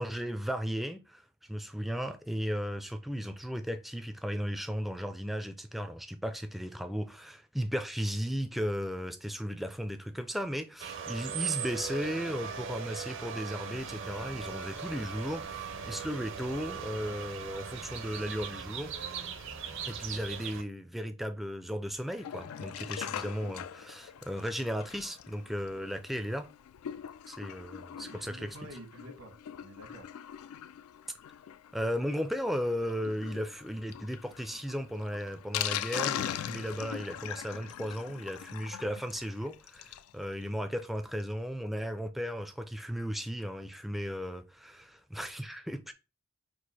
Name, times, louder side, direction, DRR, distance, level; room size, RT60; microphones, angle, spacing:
voice 1, 0.0-19.0 19.9-26.5 27.3-28.7 31.7-45.9, equal, ahead, 0.3 m, -35 dB
sound 1, 10.8-20.6, right 7 dB, 60° right, 0.6 m, -39 dB
sound 2, 13.7-20.4, left 1 dB, 60° left, 1.1 m, -53 dB
Sink (filling or washing), 22.1-40.1 40.5-40.6 40.7-40.8 41.2-41.3, left 10 dB, 85° left, 0.3 m, -41 dB
voice 2, 27.9-30.1, right 1 dB, 80° right, 1.1 m, -49 dB
4.5 x 2.4 x 4.1 m
head